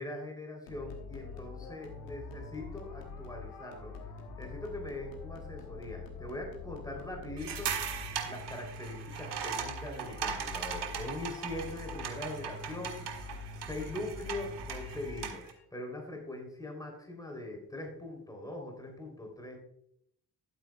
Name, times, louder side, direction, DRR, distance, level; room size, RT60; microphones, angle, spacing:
voice 1, 0.0-4.0 4.4-7.7 8.2-13.1 13.6-15.4 15.7-19.6, left 1 dB, 10° left, 1 dB, 3.4 m, -41 dB
sound 1, 0.7-15.6, left 4 dB, 90° left, 1.3 m, -45 dB
sound 2, 7.4-15.5, right 7 dB, 60° right, 1.5 m, -39 dB
12.0 x 8.4 x 2.4 m, 0.74 s
hypercardioid pair, 45°, 47 cm